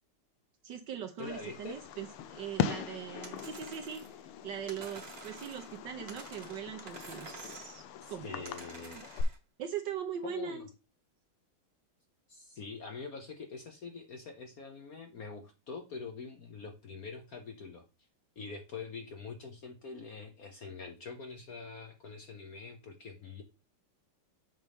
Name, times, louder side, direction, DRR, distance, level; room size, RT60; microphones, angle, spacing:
voice 1, 0.6-4.0 4.4-8.7 8.9-9.0 9.6-10.7, right 8 dB, 65° right, 1.3 m, -41 dB
Fireworks, 1.2-9.2, left 8 dB, 80° left, 1.6 m, -40 dB
voice 2, 1.2-1.8 8.0-9.0 10.2-10.7 12.3-17.8 18.4-23.4, left 4 dB, 55° left, 1.0 m, -44 dB
sound 1, 3.2-4.2 4.7-5.8 6.1-7.8 8.4-9.4, right 3 dB, 35° right, 1.3 m, -49 dB
7.4 x 5.5 x 3.5 m
omnidirectional pair, 2.4 m